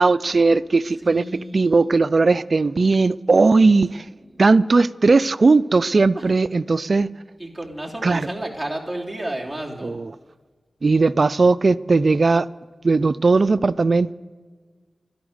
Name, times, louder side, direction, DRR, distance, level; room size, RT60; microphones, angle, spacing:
voice 1, 0.0-1.2 1.5-4.1 4.4-7.1 8.0-8.2 9.8-10.0 10.8-12.5 12.8-14.1, right 3 dB, 55° right, 0.4 m, -17 dB
voice 2, 1.0-1.9 3.4-3.8 4.3-4.4 6.1-6.2 7.4-10.0, right 1 dB, 5° right, 3.0 m, -32 dB
13.0 x 11.5 x 7.9 m
wide cardioid pair, 75°, 0 cm